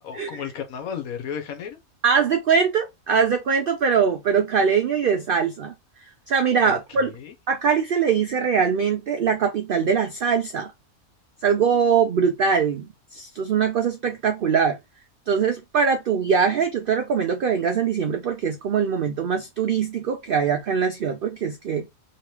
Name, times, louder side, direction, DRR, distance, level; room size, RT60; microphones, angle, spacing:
voice 1, 0.0-1.8 6.6-7.3, left 7 dB, 80° left, 1.3 m, -34 dB
voice 2, 2.0-5.7 6.3-7.1 7.5-10.7 11.4-12.9 13.1-14.8 15.3-21.9, right 6 dB, 75° right, 0.5 m, -22 dB
3.1 x 2.9 x 3.1 m
omnidirectional pair, 1.5 m